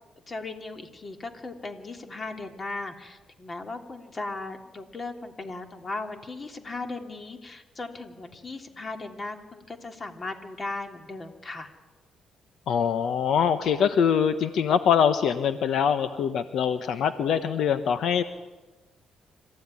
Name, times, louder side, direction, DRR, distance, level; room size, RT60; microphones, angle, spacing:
voice 1, 0.3-11.7, left 3 dB, 35° left, 5 dB, 3.2 m, -37 dB
voice 2, 12.7-18.2, left 7 dB, 70° left, 10 dB, 1.2 m, -23 dB
26.0 x 15.5 x 9.9 m, 1.2 s
cardioid pair, 90°, 0 cm